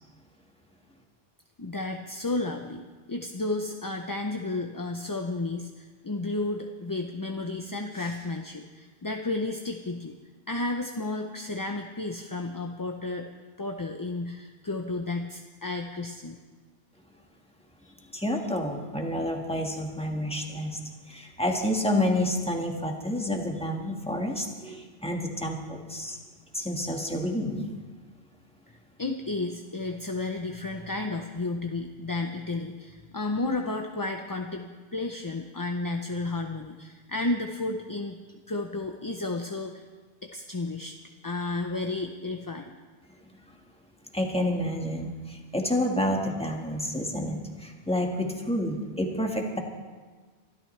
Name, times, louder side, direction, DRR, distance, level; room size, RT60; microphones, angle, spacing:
voice 1, 1.6-10.2 10.5-13.3 13.6-16.4 17.8-18.1 28.7-38.2 38.5-39.9 40.2-41.0 41.2-42.7, left 2 dB, 25° left, 3 dB, 0.5 m, -32 dB
voice 2, 18.1-20.8 21.1-26.2 26.5-27.7 43.3-43.4 44.1-49.6, left 1 dB, 5° left, 1 dB, 1.5 m, -29 dB
24.0 x 12.5 x 3.2 m, 1.4 s
omnidirectional pair, 1.0 m